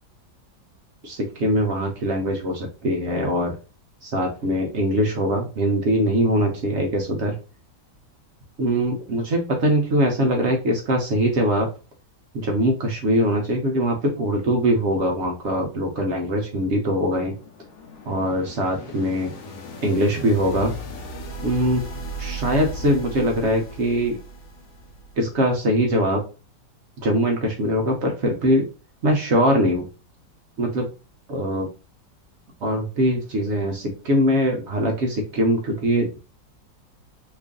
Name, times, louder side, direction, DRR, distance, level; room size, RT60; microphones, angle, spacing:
voice 1, 1.0-3.6 4.0-7.3 8.6-11.7 12.3-17.3 18.1-19.3 19.8-20.7 21.4-21.8 22.2-24.2 25.2-26.2 27.0-28.7 29.0-29.9 30.6-30.9 31.3-31.7 32.6-36.2, equal, 65° right, 1 dB, 0.7 m, -22 dB
sound 1, 16.8-25.4, equal, 65° left, 1.0 m, -37 dB
3.0 x 2.5 x 3.6 m, 0.32 s
omnidirectional pair, 1.9 m